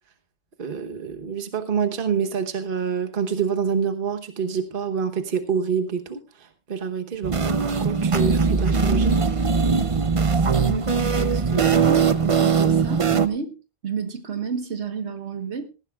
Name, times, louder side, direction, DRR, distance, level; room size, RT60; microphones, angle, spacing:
voice 1, 0.6-9.2, right 6 dB, 50° right, 1.3 m, -27 dB
sound 1, 7.2-13.3, right 5 dB, 35° right, 0.7 m, -20 dB
voice 2, 10.5-13.6 13.8-15.7, right 6 dB, 75° right, 1.7 m, -30 dB
18.5 x 15.0 x 2.4 m
omnidirectional pair, 1.2 m